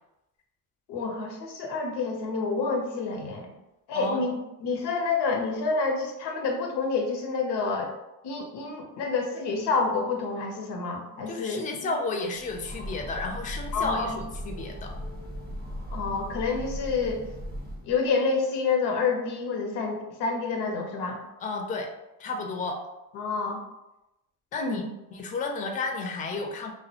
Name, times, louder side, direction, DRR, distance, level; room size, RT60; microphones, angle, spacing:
voice 1, 0.9-3.5 3.9-4.3 4.6-7.9 8.2-11.6 13.7-14.2 15.9-17.3 17.8-21.2 23.1-23.6 24.6-24.8, left 4 dB, 85° left, 2 dB, 0.6 m, -28 dB
voice 2, 11.3-15.0 21.4-21.9 22.2-22.8 24.5-24.8 25.1-26.7, left 3 dB, 20° left, 3 dB, 0.3 m, -32 dB
Train, 12.3-18.1, equal, 25° right, 0.6 m, -38 dB
2.3 x 2.1 x 2.7 m, 0.93 s
supercardioid pair, 65°, 40 cm